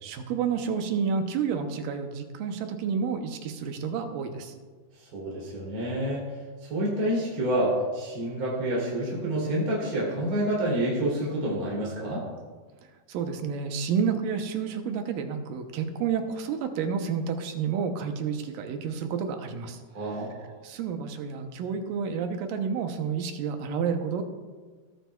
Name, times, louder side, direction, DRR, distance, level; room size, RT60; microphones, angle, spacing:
voice 1, 0.0-4.5 13.1-19.8 20.6-24.2, right 6 dB, 75° right, 6 dB, 2.3 m, -30 dB
voice 2, 5.1-6.2 6.6-12.3 19.9-20.5, right 1 dB, 35° right, -5 dB, 3.5 m, -28 dB
18.5 x 9.1 x 2.3 m, 1.4 s
omnidirectional pair, 4.3 m